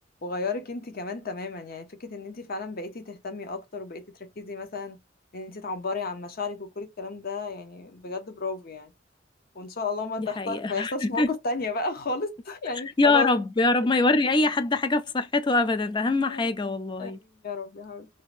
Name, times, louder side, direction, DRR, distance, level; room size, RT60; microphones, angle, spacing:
voice 1, 0.2-5.0 5.3-8.9 9.5-13.3 16.3-16.4 17.0-18.2, left 3 dB, 50° left, 0.7 m, -33 dB
voice 2, 10.2-11.3 13.0-17.2, left 3 dB, 25° left, 0.4 m, -24 dB
2.7 x 2.5 x 3.1 m
head